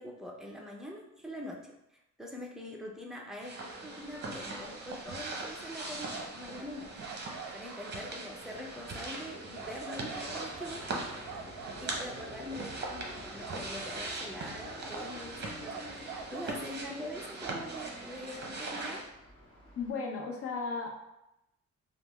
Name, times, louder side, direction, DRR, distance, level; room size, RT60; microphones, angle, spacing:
voice 1, 0.0-1.6 2.2-3.5 3.8-7.3 7.5-10.9 11.8-19.0, left 1 dB, ahead, -1 dB, 0.6 m, -43 dB
sound 1, 3.4-19.0, right 2 dB, 35° right, 0.7 m, -41 dB
sound 2, 6.1-8.2 9.0-9.2 9.5-10.9 11.3-12.3 12.8-13.7 14.0-14.3 14.6-15.3 15.6-16.8 17.1-18.8, right 6 dB, 70° right, 0.5 m, -46 dB
sound 3, 7.3-19.9, left 1 dB, 15° left, 1.4 m, -51 dB
voice 2, 19.8-20.9, left 4 dB, 50° left, 1 dB, 0.7 m, -35 dB
3.2 x 2.0 x 3.1 m, 0.87 s
cardioid pair, 90°, 30 cm